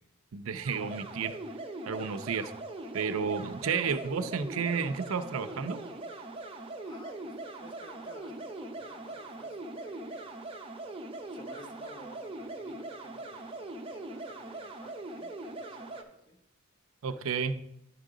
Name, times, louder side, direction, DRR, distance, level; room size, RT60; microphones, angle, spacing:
voice 1, 0.3-1.4 1.9-2.5 2.9-5.8 17.0-17.6, right 5 dB, 85° right, 10 dB, 0.5 m, -31 dB
sound 1, 0.6-16.0, right 2 dB, 25° right, 0.7 m, -41 dB
voice 2, 6.8-10.3 11.3-16.4, left 1 dB, 20° left, 2 dB, 1.0 m, -54 dB
10.5 x 3.7 x 4.9 m, 0.78 s
head